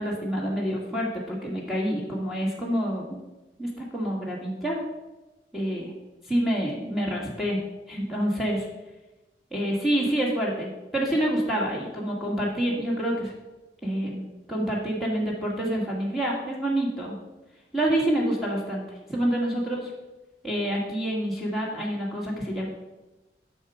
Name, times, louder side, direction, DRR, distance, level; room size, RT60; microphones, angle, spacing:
voice 1, 0.0-3.2 3.6-4.8 5.5-5.9 6.3-7.6 7.9-8.7 9.5-13.3 13.8-17.1 17.7-19.9 20.4-22.7, right 1 dB, ahead, -4 dB, 1.6 m, -27 dB
9.6 x 6.1 x 4.8 m, 1.1 s
head